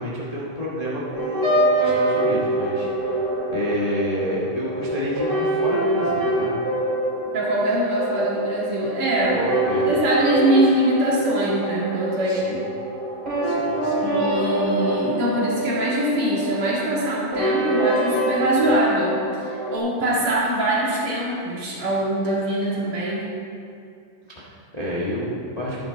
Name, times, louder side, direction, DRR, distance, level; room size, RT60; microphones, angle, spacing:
voice 1, 0.0-3.2 3.5-6.6 9.3-9.9 12.3-12.6 13.4-14.5 24.3-25.9, equal, 35° left, -7 dB, 0.5 m, -29 dB
sound 1, 0.9-19.8, right 1 dB, 20° right, 2.9 m, -25 dB
voice 2, 7.3-9.4 9.9-12.6 14.0-23.2, right 1 dB, 45° right, -6 dB, 2.8 m, -23 dB
12.5 x 9.9 x 4.1 m, 2.5 s
omnidirectional pair, 3.8 m